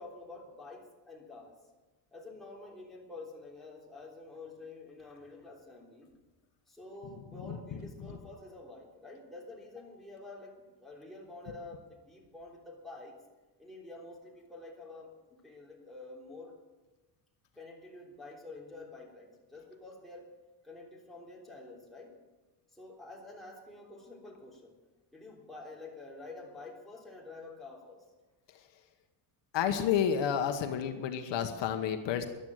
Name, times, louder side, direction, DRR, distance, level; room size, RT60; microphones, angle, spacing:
voice 1, 0.0-1.6 2.1-6.1 6.7-10.5 10.8-13.1 13.6-15.1 15.4-16.5 17.5-20.3 20.6-22.1 22.7-24.7 25.1-28.0, left 2 dB, ahead, -4 dB, 3.4 m, -48 dB
voice 2, 29.5-32.3, left 8 dB, 65° left, 6 dB, 1.3 m, -30 dB
14.0 x 11.5 x 7.9 m, 1.2 s
cardioid pair, 165°, 46 cm